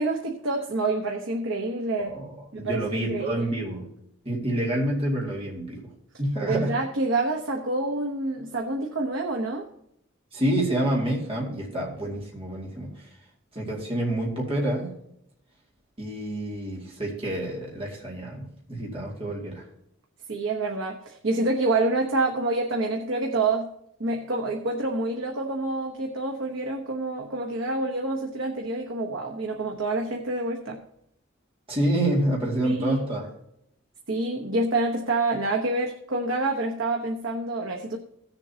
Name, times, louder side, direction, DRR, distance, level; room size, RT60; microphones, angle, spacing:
voice 1, 0.0-2.1 2.5-3.4 6.5-9.6 20.3-23.7 24.0-30.8 32.6-33.0 34.1-38.0, right 2 dB, 70° right, 1 dB, 1.0 m, -27 dB
voice 2, 2.6-3.9 4.3-5.8 6.2-6.7 10.3-12.9 13.5-14.9 16.0-19.6 31.7-33.3, right 1 dB, 30° right, -3 dB, 2.2 m, -28 dB
17.0 x 7.1 x 2.8 m, 0.76 s
head